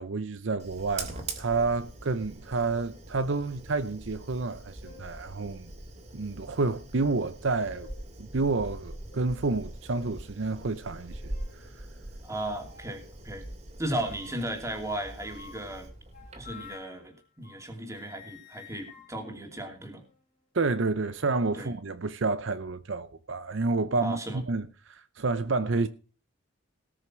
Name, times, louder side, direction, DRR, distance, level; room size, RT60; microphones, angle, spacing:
voice 1, 0.0-5.7 6.1-7.9 8.2-11.7 20.5-25.9, right 3 dB, 65° right, 0.7 m, -29 dB
Fire, 0.6-16.7, right 2 dB, 35° right, 2.7 m, -43 dB
sound 1, 4.8-5.2 6.0-6.1 7.3-8.1 8.5-8.7 9.1-9.3 9.9-10.2 10.8-11.6 12.6-13.0 14.0-14.6 15.2-17.7 17.9-20.2, left 7 dB, 40° left, 3.1 m, -52 dB
voice 2, 12.2-13.5 13.8-15.9 16.4-20.0 21.6-21.7 24.0-24.4, right 1 dB, 15° right, 2.8 m, -35 dB
18.5 x 6.5 x 6.1 m
head